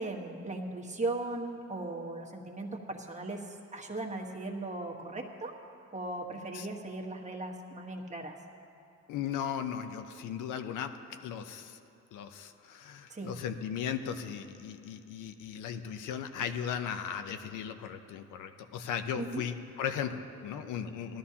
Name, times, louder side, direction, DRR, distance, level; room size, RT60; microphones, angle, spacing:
voice 1, 0.0-5.5 5.9-8.4 13.1-13.3 19.1-19.4, right 2 dB, 25° right, 1 dB, 1.3 m, -38 dB
voice 2, 9.1-10.9 11.2-11.8 12.1-21.2, left 8 dB, 85° left, 9 dB, 0.7 m, -37 dB
17.0 x 12.5 x 2.8 m, 2.8 s
cardioid pair, 90°, 30 cm